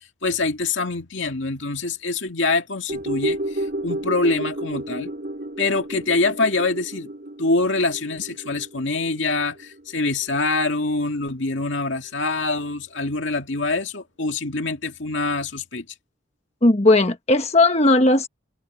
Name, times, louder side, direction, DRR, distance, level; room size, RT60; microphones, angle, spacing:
voice 1, 0.2-5.1 5.6-7.1 7.4-15.9, left 3 dB, 70° left, 2.2 m, -25 dB
sound 1, 2.9-11.3 11.6-11.7, right 1 dB, 50° right, 4.3 m, -32 dB
voice 2, 16.6-18.3, left 2 dB, 35° left, 1.3 m, -16 dB
head